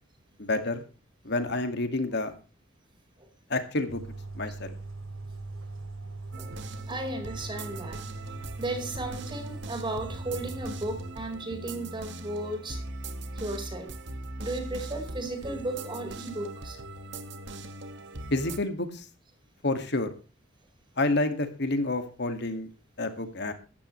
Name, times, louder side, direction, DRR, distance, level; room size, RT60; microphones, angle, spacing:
voice 1, 0.4-0.8 1.2-2.3 3.5-4.0 4.3-4.7 18.3-19.1 19.6-20.1 21.0-22.7 23.0-23.5, left 2 dB, 60° left, 8 dB, 2.2 m, -29 dB
sound 1, 3.9-11.1, right 2 dB, 90° right, 2.7 m, -40 dB
sound 2, 6.3-18.6, right 2 dB, 65° right, 1.9 m, -40 dB
voice 2, 6.9-8.0 8.6-12.8 13.3-13.9 14.4-16.8, right 2 dB, 25° right, 4 dB, 4.8 m, -35 dB
16.5 x 14.5 x 3.3 m, 0.33 s
head